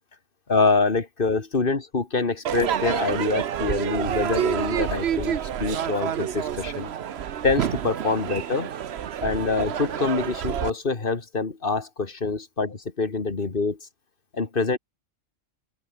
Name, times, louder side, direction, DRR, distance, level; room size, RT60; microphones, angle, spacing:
voice 1, 0.5-6.9 7.4-8.7 9.2-13.8 14.3-14.8, left 4 dB, 40° left, 2.2 m, -25 dB
Crowd / Fireworks, 2.5-10.7, right 9 dB, 60° right, 1.0 m, -28 dB
open air
omnidirectional pair, 1.4 m